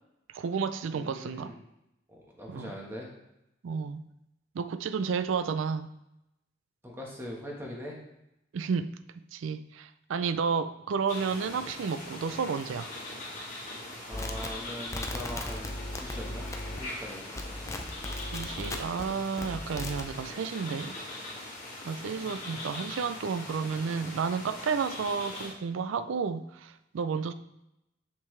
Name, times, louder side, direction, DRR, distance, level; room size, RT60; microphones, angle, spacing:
voice 1, 0.3-1.5 2.5-2.7 3.6-4.0 4.5-5.9 8.5-9.0 9.3-12.9 18.2-20.9 21.9-27.3, right 5 dB, 85° right, 12 dB, 0.4 m, -31 dB
voice 2, 0.9-1.6 2.1-3.1 6.8-8.0 14.1-17.7 22.0-22.8, equal, 15° right, -2 dB, 1.4 m, -42 dB
sound 1, 11.1-25.5, left 2 dB, 40° left, 1.9 m, -41 dB
sound 2, 14.1-17.0 17.3-19.0 19.4-20.1, left 1 dB, 15° left, 0.5 m, -37 dB
6.7 x 5.4 x 3.3 m, 0.87 s
head